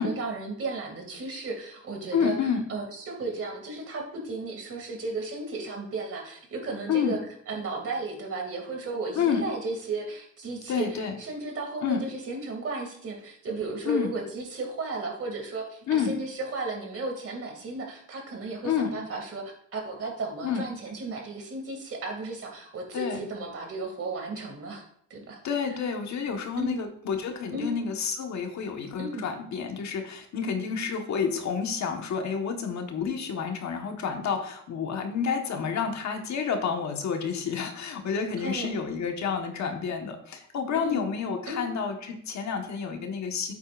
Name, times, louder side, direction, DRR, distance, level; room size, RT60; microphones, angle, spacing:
voice 1, 0.0-2.4 2.7-7.2 7.5-24.8 25.1-25.4 26.6-26.8 27.5-27.7 29.0-29.3 38.4-38.7 40.7-41.0 41.5-41.7, right 3 dB, 50° right, 2 dB, 2.5 m, -34 dB
voice 2, 2.1-2.6 6.9-7.2 9.1-9.4 10.7-11.1 11.8-12.0 13.8-14.1 15.9-16.1 18.6-18.9 20.4-20.6 22.9-23.2 25.4-43.5, left 6 dB, 65° left, 4 dB, 1.4 m, -29 dB
9.3 x 8.1 x 2.5 m, 0.67 s
cardioid pair, 90°, 30 cm